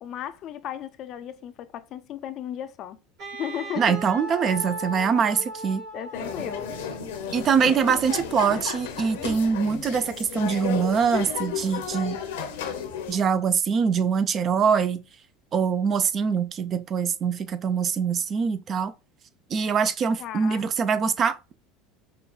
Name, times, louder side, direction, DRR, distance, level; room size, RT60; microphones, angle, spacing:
voice 1, 0.0-3.0 3.4-4.0 5.9-6.8 20.2-20.7, left 11 dB, 50° left, 0.4 m, -35 dB
Wind instrument woodwind instrument, 3.2-7.2, right 1 dB, 60° right, 2.1 m, -37 dB
voice 2, 3.8-5.8 7.3-12.2 13.1-15.0 15.5-18.9 19.5-21.5, right 6 dB, 40° right, 0.4 m, -23 dB
sound 1, 6.1-13.2, left 7 dB, 80° left, 0.8 m, -33 dB
5.0 x 2.2 x 2.3 m
hypercardioid pair, 90°, 0 cm